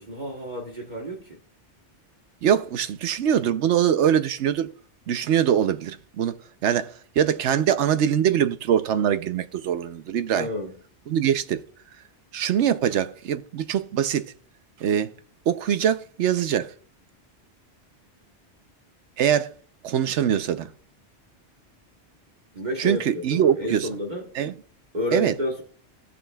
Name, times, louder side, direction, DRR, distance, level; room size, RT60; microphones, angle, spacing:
voice 1, 0.0-1.4 10.3-10.7 22.5-23.0 23.3-24.2 24.9-25.6, equal, 40° right, 1.4 m, -30 dB
voice 2, 2.4-4.7 5.1-6.4 6.6-10.5 11.1-11.6 12.3-14.3 14.8-15.1 15.5-16.7 19.2-19.5 19.8-20.7 22.8-23.9 24.3-24.5 25.1-25.4, right 9 dB, 85° right, 1.0 m, -23 dB
16.0 x 7.0 x 2.3 m
omnidirectional pair, 1.2 m